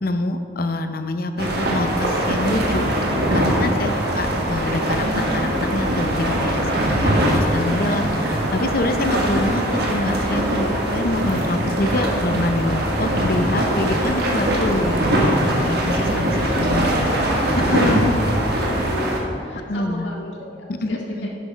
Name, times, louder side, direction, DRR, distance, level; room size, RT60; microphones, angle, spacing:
voice 1, 0.0-2.8 3.3-16.3 16.6-17.0 17.7-18.2 19.7-20.1 20.8-21.3, left 2 dB, 55° left, 8 dB, 0.7 m, -25 dB
sound 1, 1.4-19.2, right 1 dB, 60° right, 1.5 m, -21 dB
voice 2, 16.0-17.7 18.8-21.3, left 1 dB, 85° left, -2 dB, 2.0 m, -36 dB
11.0 x 6.3 x 5.0 m, 2.3 s
head